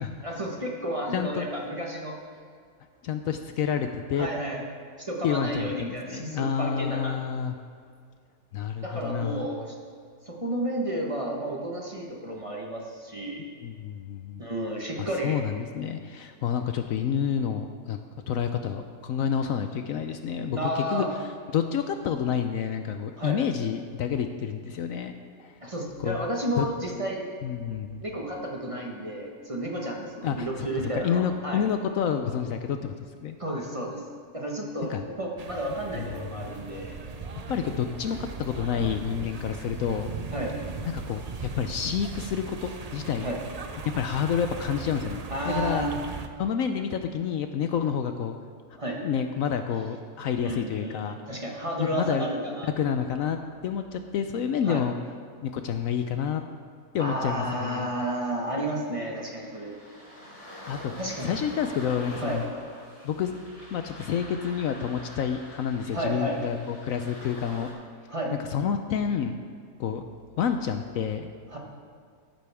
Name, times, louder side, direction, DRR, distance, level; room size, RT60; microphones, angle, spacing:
voice 1, 0.2-2.2 4.2-4.6 5.0-7.2 8.8-9.7 10.3-13.4 14.4-15.4 20.5-21.1 23.2-23.4 25.6-27.3 28.0-31.6 33.4-34.0 34.3-36.9 40.3-40.6 43.2-43.4 45.3-45.9 48.8-49.0 50.4-52.7 54.6-54.8 57.0-59.8 61.0-61.3 62.2-62.4 65.9-66.4 68.1-68.4 71.5-71.6, right 1 dB, 25° right, -1 dB, 1.2 m, -32 dB
voice 2, 1.1-1.5 3.0-4.3 5.2-7.5 8.5-9.5 13.6-14.4 15.0-18.0 18.3-21.1 21.5-25.1 25.4-25.6 26.0-26.2 26.6-26.7 27.4-28.0 30.2-30.7 30.9-33.4 34.9-35.0 36.0-36.5 37.5-40.1 40.8-43.3 44.0-45.9 46.4-48.4 49.0-51.2 51.8-52.3 52.8-53.4 53.6-55.0 55.4-56.4 56.9-57.9 60.7-60.9 61.2-62.4 63.0-63.3 63.7-67.7 68.5-69.4 69.8-70.0 70.4-71.3, left 8 dB, 70° left, 7 dB, 0.9 m, -29 dB
sound 1, 35.4-46.3, right 4 dB, 60° right, 0.4 m, -38 dB
sound 2, 57.9-67.7, equal, 85° left, 3.9 m, -45 dB
13.5 x 11.5 x 3.5 m, 2.2 s
omnidirectional pair, 1.6 m